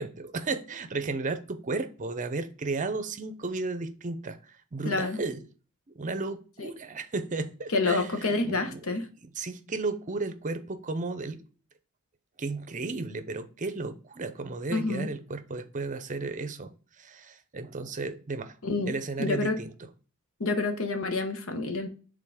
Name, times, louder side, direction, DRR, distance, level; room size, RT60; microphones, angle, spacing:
voice 1, 0.0-5.4 5.9-8.8 9.4-11.4 12.4-16.7 17.0-18.6 18.9-19.7, right 3 dB, 35° right, 0.6 m, -34 dB
voice 2, 4.8-5.2 6.6-6.7 7.7-9.1 14.7-15.1 18.6-18.9 19.2-19.6 20.4-21.9, left 3 dB, 65° left, 1.0 m, -28 dB
5.6 x 3.8 x 4.8 m
head